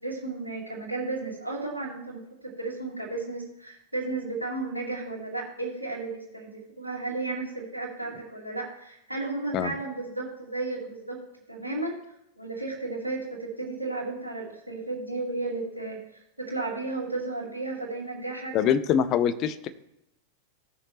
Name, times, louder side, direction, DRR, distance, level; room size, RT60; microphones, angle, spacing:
voice 1, 0.0-2.2 2.6-11.2 11.5-12.0 12.4-16.0 16.4-18.6, right 3 dB, 85° right, -4 dB, 2.4 m, -33 dB
voice 2, 18.5-19.7, left 8 dB, 35° left, 12 dB, 0.7 m, -24 dB
17.0 x 6.6 x 3.0 m, 0.82 s
figure-of-eight pair, 90°, 0 cm